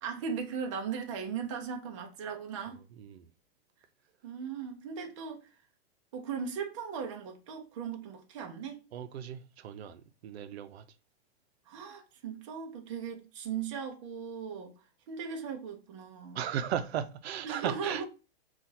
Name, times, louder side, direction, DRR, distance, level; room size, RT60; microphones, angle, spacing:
voice 1, 0.0-2.8 4.2-5.4 6.1-8.8 11.7-14.7 15.1-16.4 17.4-18.0, right 6 dB, 30° right, 0.6 m, -38 dB
voice 2, 3.0-3.3 8.9-10.8 16.3-18.0, right 9 dB, 90° right, 0.6 m, -36 dB
5.7 x 2.4 x 2.8 m
supercardioid pair, 175°, 31 cm